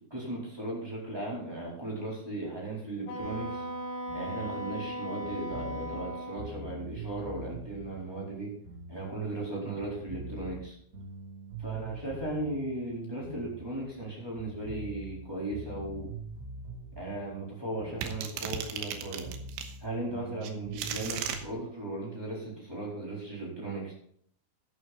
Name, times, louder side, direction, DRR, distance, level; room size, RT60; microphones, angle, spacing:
voice 1, 0.1-3.6 4.1-8.5 8.9-10.7 11.6-16.1 16.9-19.3 19.8-23.9, right 2 dB, 5° right, -4 dB, 3.4 m, -37 dB
Wind instrument woodwind instrument, 3.1-6.5, equal, 70° left, 3.5 m, -37 dB
sound 1, 3.2-9.5 9.8-14.1 14.4-18.6 18.9-21.5, right 2 dB, 50° right, 1.0 m, -45 dB
sound 2, 18.0-19.7 20.4-21.4, right 8 dB, 80° right, 3.4 m, -36 dB
12.5 x 9.4 x 4.2 m, 0.65 s
omnidirectional pair, 5.7 m